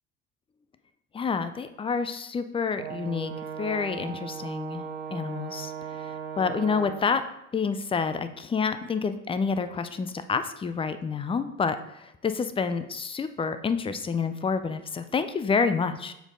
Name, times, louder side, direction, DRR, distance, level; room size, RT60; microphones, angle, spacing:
voice 1, 1.1-3.3 3.6-4.8 5.1-7.2 7.5-16.1, left 5 dB, 15° left, 11 dB, 0.5 m, -28 dB
Brass instrument, 2.8-7.2, right 7 dB, 70° right, 1.0 m, -37 dB
6.7 x 4.5 x 3.8 m, 0.85 s
figure-of-eight pair, 60°, 41 cm